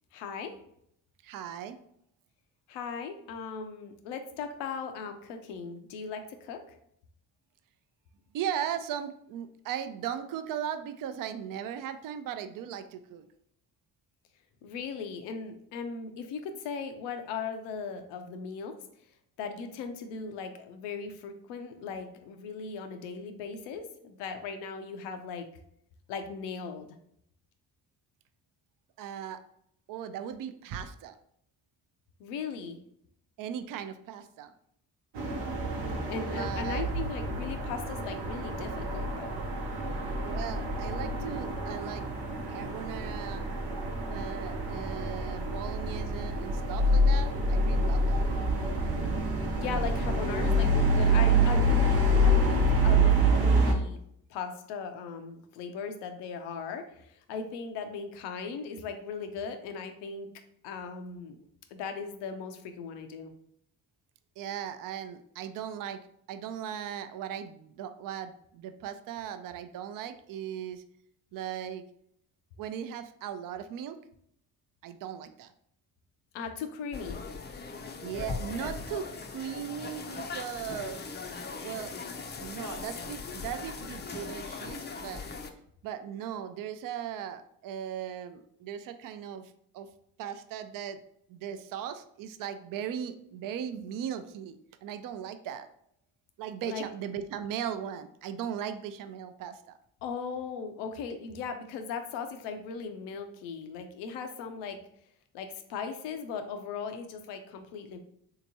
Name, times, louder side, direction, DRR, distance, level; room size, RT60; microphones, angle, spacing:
voice 1, 0.1-0.5 2.7-6.8 14.6-18.7 19.4-25.5 26.1-26.9 32.2-32.8 36.1-39.4 49.5-54.0 54.3-60.3 60.6-61.4 61.7-63.3 76.3-77.2 96.6-96.9 100.0-104.8 105.3-108.0, left 5 dB, 90° left, 7 dB, 0.6 m, -38 dB
voice 2, 1.2-1.8 8.3-13.2 29.0-29.4 29.9-31.2 33.4-34.5 36.3-36.9 40.2-42.0 42.5-43.4 44.0-48.2 64.4-66.0 66.3-70.8 71.3-71.8 72.6-74.0 74.8-75.5 78.0-81.0 81.6-81.9 82.4-85.2 85.8-89.9 90.2-91.0 91.3-95.7 96.4-99.6, right 9 dB, 55° right, 10 dB, 0.4 m, -38 dB
sound 1, 35.2-53.7, right 1 dB, 80° right, 0.8 m, -27 dB
sound 2, 76.9-85.5, left 4 dB, 25° left, 0.4 m, -39 dB
3.5 x 2.9 x 2.7 m, 0.71 s
supercardioid pair, 65°, 41 cm